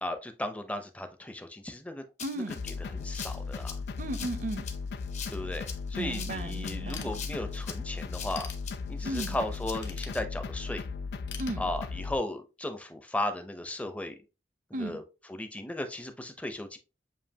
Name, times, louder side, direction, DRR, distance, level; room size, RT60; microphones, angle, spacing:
voice 1, 0.0-2.0 2.9-3.8 5.3-8.5 8.9-10.9 11.6-14.2 14.8-15.0 15.3-16.8, left 1 dB, 10° left, 0.5 m, -36 dB
Rattle (instrument), 2.2-10.2, left 7 dB, 40° left, 0.7 m, -43 dB
voice 2, 2.2-2.6 4.0-4.6 5.9-7.1 9.0-9.4 11.4-11.6 14.7-15.0, right 1 dB, 50° right, 0.6 m, -35 dB
sound 1, 2.5-12.2, left 4 dB, 65° left, 0.3 m, -37 dB
Ratchet pawl / Tools, 6.9-7.7 8.1-9.2 9.8-10.7 11.3-12.3, left 7 dB, 85° left, 0.9 m, -45 dB
7.4 x 2.6 x 2.7 m
head